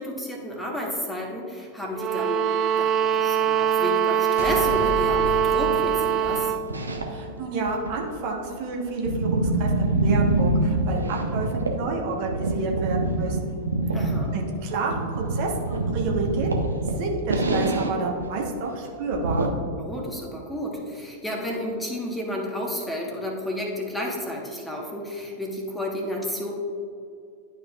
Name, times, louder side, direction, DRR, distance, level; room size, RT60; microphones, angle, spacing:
voice 1, 0.0-2.5 2.8-6.5 13.9-14.3 19.8-26.5, left 1 dB, 5° left, -1 dB, 1.2 m, -31 dB
sound 1, 1.9-6.7, right 8 dB, 30° right, 0.5 m, -23 dB
sound 2, 4.4-6.9, left 2 dB, 50° left, 1.1 m, -33 dB
sound 3, 6.2-7.3 7.7-11.9 12.2-18.0 18.2-18.3 18.7-18.8 19.1-19.5, right 2 dB, 75° right, 0.7 m, -25 dB
voice 2, 7.1-13.4 14.3-16.6 17.0-19.5, right 3 dB, 45° right, 0 dB, 1.1 m, -29 dB
11.5 x 5.1 x 2.4 m, 2.4 s
figure-of-eight pair, 90°, 0 cm